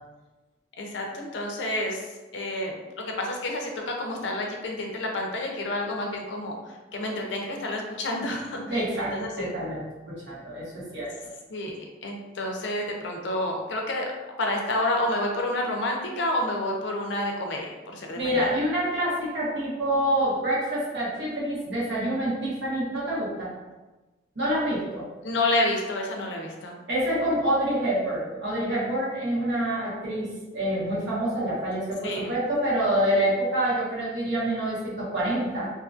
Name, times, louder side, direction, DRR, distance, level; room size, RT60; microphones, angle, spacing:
voice 1, 0.8-2.1 2.3-8.6 9.1-9.5 11.5-11.7 12.0-14.1 14.4-18.5 25.2-26.8 32.0-32.3, left 1 dB, 70° left, 1 dB, 0.5 m, -29 dB
voice 2, 8.7-11.1 18.1-23.5 24.3-25.0 26.9-35.7, right 1 dB, 65° right, -8 dB, 1.2 m, -27 dB
2.8 x 2.5 x 2.4 m, 1.1 s
head